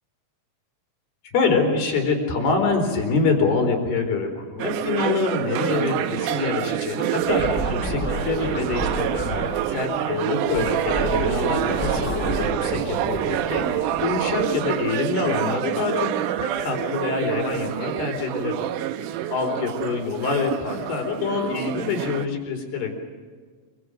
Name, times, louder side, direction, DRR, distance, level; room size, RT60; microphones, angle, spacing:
voice 1, 1.3-16.1 16.4-18.6 19.1-22.9, left 4 dB, 80° left, 4 dB, 6.1 m, -25 dB
sound 1, 4.6-22.3, right 12 dB, 75° right, 2.0 m, -27 dB
Scratching (performance technique), 7.3-9.6 10.5-14.8, equal, ahead, 7.1 m, -30 dB
27.0 x 24.5 x 6.4 m, 1.6 s
omnidirectional pair, 4.5 m